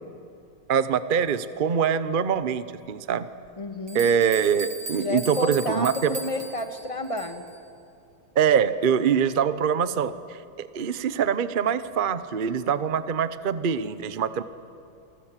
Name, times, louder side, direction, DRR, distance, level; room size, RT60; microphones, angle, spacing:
voice 1, 0.7-3.3 3.9-6.2 8.3-14.4, right 7 dB, 60° right, 13 dB, 0.5 m, -24 dB
sound 1, 3.4-3.5 3.9-7.6, right 3 dB, 75° right, 3.2 m, -39 dB
voice 2, 3.6-4.1 5.0-7.4, left 2 dB, 15° left, 6 dB, 1.5 m, -30 dB
28.5 x 24.0 x 7.5 m, 2.6 s
omnidirectional pair, 2.2 m